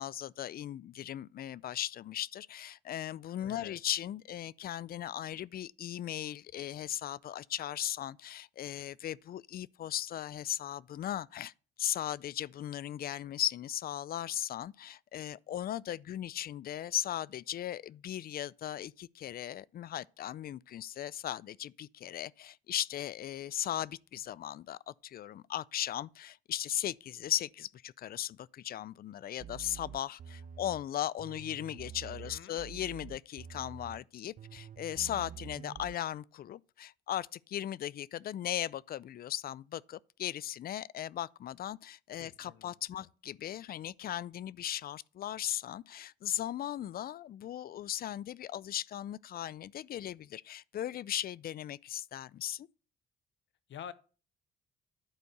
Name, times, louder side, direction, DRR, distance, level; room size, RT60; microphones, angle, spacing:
voice 1, 0.0-11.5 11.8-52.7, left 11 dB, 50° left, 0.4 m, -37 dB
voice 2, 3.4-3.8 32.2-32.6 42.2-43.1 53.7-53.9, left 9 dB, 70° left, 0.9 m, -48 dB
sound 1, 29.4-30.8 31.2-34.0 34.4-36.0, right 8 dB, 45° right, 0.6 m, -47 dB
11.0 x 4.5 x 6.6 m
cardioid pair, 90°, 20 cm